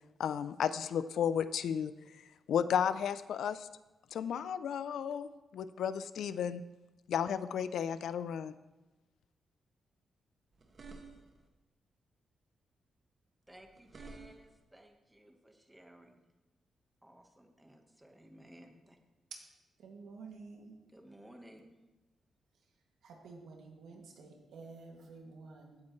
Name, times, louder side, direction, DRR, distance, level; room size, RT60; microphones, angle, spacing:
voice 1, 0.2-1.9 2.5-3.7 4.1-6.6 7.1-8.5, left 8 dB, 75° left, 14 dB, 0.5 m, -33 dB
sound 1, 10.5-11.5 13.5-14.6, right 3 dB, 45° right, 1.9 m, -52 dB
voice 2, 13.5-16.2 17.0-19.0 20.9-21.7, right 1 dB, 5° right, 3 dB, 1.3 m, -57 dB
voice 3, 19.8-20.8 23.0-25.8, right 4 dB, 85° right, 0 dB, 2.2 m, -51 dB
16.0 x 9.0 x 3.2 m, 1.1 s
cardioid pair, 120°, 0 cm